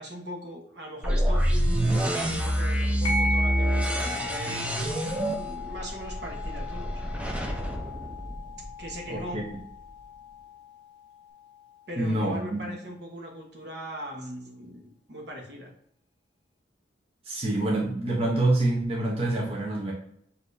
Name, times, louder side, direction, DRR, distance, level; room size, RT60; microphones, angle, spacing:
voice 1, 0.0-5.0 5.3-7.0 8.8-9.4 11.9-15.7, equal, 65° right, 0 dB, 1.1 m, -40 dB
sound 1, 1.0-8.9, equal, 5° right, 0.5 m, -27 dB
sound 2, 3.0-12.0, left 2 dB, 30° left, 1.1 m, -36 dB
voice 2, 9.1-9.5 12.0-12.6 17.2-19.9, right 2 dB, 35° right, -3 dB, 0.8 m, -26 dB
6.4 x 2.8 x 2.6 m, 0.70 s
head